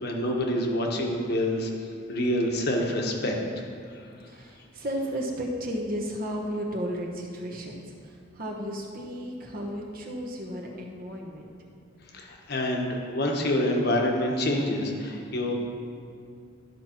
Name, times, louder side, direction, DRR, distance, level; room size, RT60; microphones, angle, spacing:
voice 1, 0.0-1.7 2.1-3.4 3.9-4.0 12.1-15.5, left 1 dB, 55° left, 1 dB, 1.2 m, -27 dB
voice 2, 4.2-11.5, equal, 45° right, -1 dB, 1.1 m, -34 dB
12.5 x 5.9 x 4.5 m, 2.4 s
head